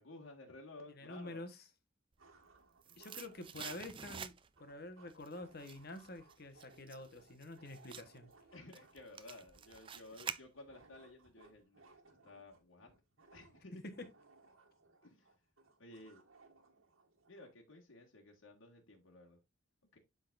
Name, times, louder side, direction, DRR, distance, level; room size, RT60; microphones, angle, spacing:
voice 1, 0.0-1.4 2.9-3.0 8.5-12.9 13.3-13.8 15.0-15.3 15.8-16.2 17.3-19.4 19.9-20.0, left 2 dB, 75° left, 1.8 m, -55 dB
voice 2, 0.9-1.6 3.0-4.3 4.6-8.3 13.8-13.9, left 2 dB, 50° left, 1.2 m, -48 dB
sound 1, 1.2-1.3 2.2-17.6, right 3 dB, 80° right, 1.7 m, -65 dB
sound 2, 2.3-4.7 5.1-11.0 11.3-11.4, right 7 dB, 25° right, 0.4 m, -49 dB
12.0 x 3.9 x 2.5 m
head